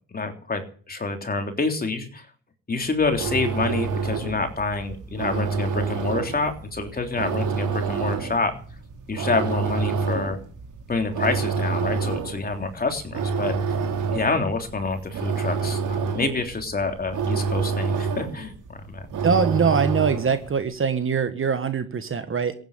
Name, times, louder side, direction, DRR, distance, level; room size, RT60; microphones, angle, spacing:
voice 1, 0.1-0.6 0.9-2.3 2.7-8.5 9.1-10.4 10.9-13.8 14.1-19.1, left 3 dB, 25° left, 5 dB, 3.4 m, -27 dB
sound 1, 2.9-20.5, right 5 dB, 60° right, 3.0 m, -28 dB
voice 2, 19.2-22.5, right 6 dB, 35° right, 10 dB, 1.4 m, -23 dB
16.0 x 9.4 x 8.5 m, 0.43 s
cardioid pair, 90°, 35 cm